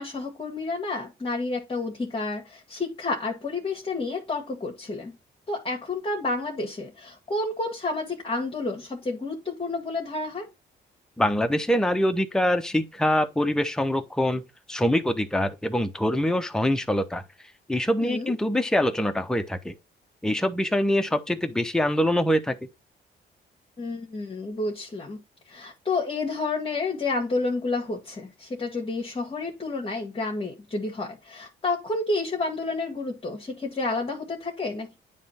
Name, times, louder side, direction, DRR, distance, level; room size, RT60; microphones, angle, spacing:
voice 1, 0.0-5.2 5.5-10.5 18.0-18.3 23.8-25.2 25.4-35.0, left 3 dB, 30° left, 1.7 m, -30 dB
voice 2, 11.2-14.4 14.7-17.2 17.7-19.7 20.2-22.6, equal, 5° left, 0.9 m, -24 dB
9.2 x 3.2 x 4.3 m
cardioid pair, 90°, 20 cm